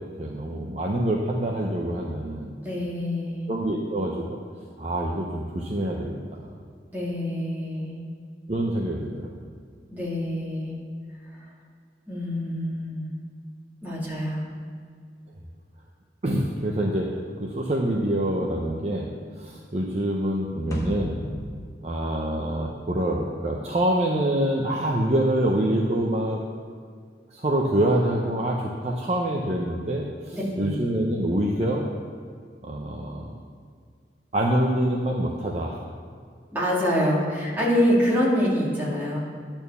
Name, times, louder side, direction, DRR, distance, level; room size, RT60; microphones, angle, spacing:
voice 1, 0.0-2.5 3.5-4.4 4.8-6.5 8.5-9.4 16.2-17.1 17.4-21.2 21.8-26.4 27.3-31.9 32.6-33.4 34.3-35.8, right 1 dB, 35° right, -2 dB, 0.7 m, -26 dB
voice 2, 2.6-3.5 6.9-8.0 9.9-10.8 11.3-11.4 12.1-13.1 13.8-14.5 30.3-30.8 36.5-39.2, equal, 10° right, -7 dB, 2.1 m, -26 dB
sound 1, 20.7-23.2, equal, 15° left, 0.9 m, -35 dB
11.0 x 4.4 x 6.9 m, 2.1 s
head